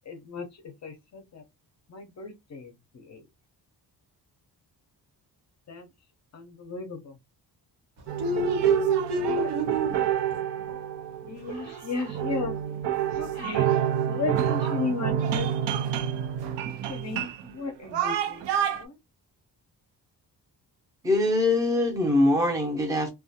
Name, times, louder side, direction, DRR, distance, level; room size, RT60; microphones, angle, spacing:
voice 1, 0.1-1.4 1.9-3.3 5.7-5.9 6.3-7.2 9.4-9.5 11.3-12.6 13.2-13.7 14.1-15.5 15.8-16.1 16.9-18.4 18.8-19.0, left 4 dB, 45° left, 0.5 m, -35 dB
voice 2, 8.0-10.0 10.3-10.4, right 4 dB, 70° right, 1.2 m, -26 dB
sound 1, 8.1-18.8, right 10 dB, 85° right, 0.5 m, -28 dB
voice 3, 21.0-23.1, left 2 dB, 10° right, 0.6 m, -23 dB
2.3 x 2.2 x 2.7 m
wide cardioid pair, 165°, 41 cm